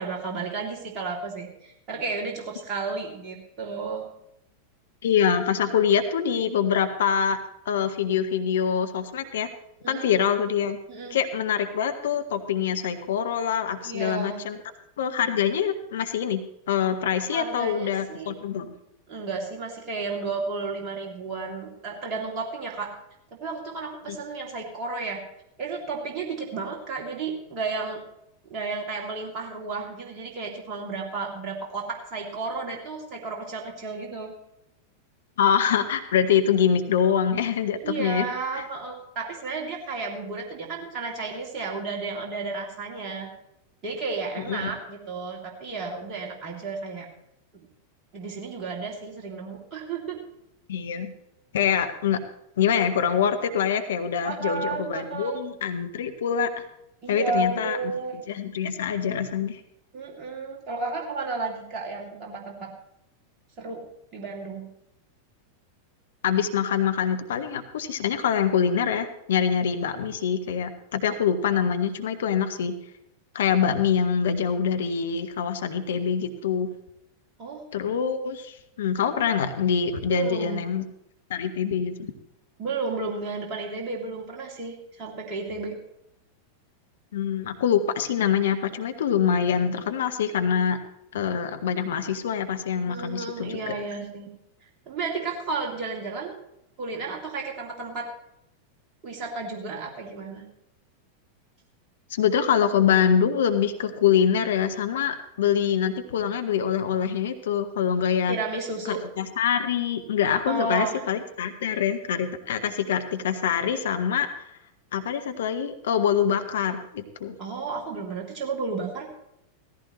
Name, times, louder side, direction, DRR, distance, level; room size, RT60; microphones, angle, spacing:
voice 1, 0.0-4.1 9.8-10.1 10.9-11.2 13.8-14.4 17.3-18.4 19.1-23.0 23.4-25.3 25.6-28.0 28.4-34.3 37.8-43.3 43.8-47.1 48.1-50.2 54.2-55.4 57.0-58.2 59.9-62.7 63.6-63.8 64.1-64.7 77.4-77.7 80.1-80.7 82.6-85.8 92.9-94.3 94.9-96.3 96.8-98.1 99.0-100.4 108.3-109.0 110.5-111.0 117.4-119.1, right 4 dB, 35° right, -1 dB, 2.6 m, -32 dB
voice 2, 5.0-7.4 7.7-9.5 9.9-10.8 11.1-14.6 15.0-16.4 16.7-18.7 24.1-24.2 35.4-38.3 38.5-38.6 44.5-44.7 50.7-51.1 51.5-52.2 52.6-56.6 57.1-57.8 58.1-59.6 66.2-72.7 73.3-76.7 77.7-80.8 81.3-82.1 87.1-90.8 91.1-93.7 102.1-108.4 108.9-114.3 114.9-117.3, left 8 dB, 60° left, 8 dB, 0.9 m, -25 dB
17.0 x 14.0 x 3.1 m, 0.83 s
figure-of-eight pair, 90°, 0 cm